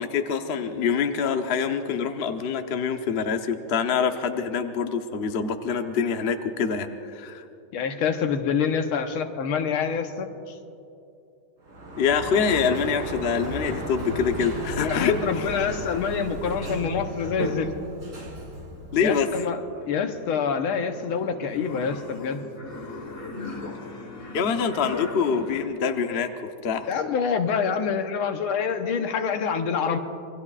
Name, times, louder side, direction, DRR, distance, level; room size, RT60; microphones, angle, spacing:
voice 1, 0.0-7.4 12.0-15.5 18.9-19.3 24.3-26.9, left 6 dB, 60° left, 6 dB, 0.6 m, -25 dB
voice 2, 7.7-10.6 14.7-17.7 19.0-22.4 26.9-30.0, left 6 dB, 85° left, 6 dB, 1.8 m, -26 dB
Sliding door, 11.6-19.4, right 1 dB, 45° right, 3.7 m, -34 dB
sound 1, 19.6-25.6, left 2 dB, 30° left, 1.4 m, -39 dB
27.5 x 21.5 x 2.4 m, 2.7 s
omnidirectional pair, 2.3 m